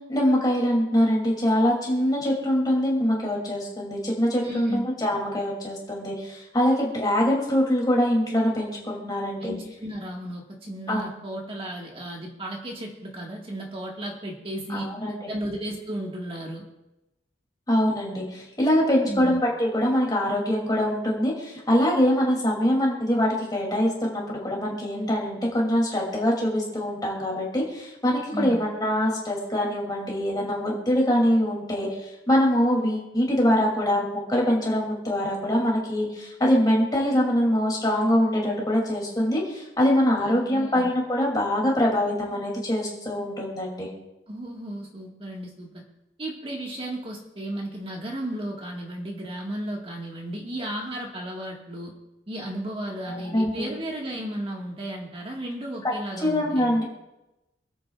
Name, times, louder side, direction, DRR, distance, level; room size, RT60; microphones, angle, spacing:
voice 1, 0.1-9.5 10.9-11.0 14.7-15.3 17.7-43.9 53.1-53.7 55.8-55.9 56.2-56.8, equal, 25° left, -2 dB, 2.8 m, -24 dB
voice 2, 4.4-4.9 9.4-14.9 15.3-16.7 19.1-19.4 28.3-28.6 40.1-40.9 44.3-45.8 46.2-51.9 52.3-56.7, right 1 dB, 35° right, -1 dB, 1.7 m, -34 dB
27.0 x 9.1 x 2.4 m, 0.97 s
head